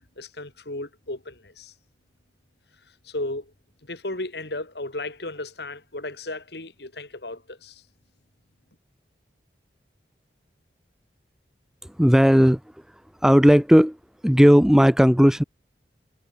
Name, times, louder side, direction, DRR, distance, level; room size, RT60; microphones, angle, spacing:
voice 1, 0.2-1.7 3.0-3.5 3.8-7.8, left 2 dB, 70° left, 3.2 m, -34 dB
voice 2, 12.0-12.6 13.2-14.0 14.2-15.4, equal, 5° right, 0.5 m, -15 dB
head